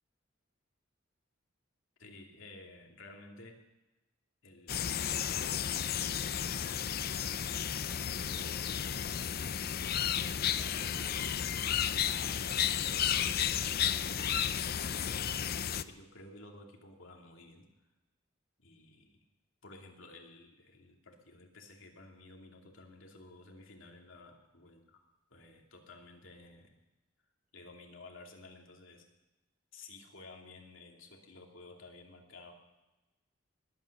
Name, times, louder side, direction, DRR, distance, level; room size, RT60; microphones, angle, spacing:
voice 1, 2.0-3.6 4.4-4.8 5.1-6.8 8.2-17.7 18.6-19.2 19.6-24.8 25.3-26.7 27.5-29.0 29.7-32.5, left 2 dB, 90° left, 1 dB, 2.8 m, -53 dB
sound 1, 4.7-15.8, left 9 dB, 50° left, 0.6 m, -33 dB
20.5 x 9.2 x 6.6 m, 1.1 s
head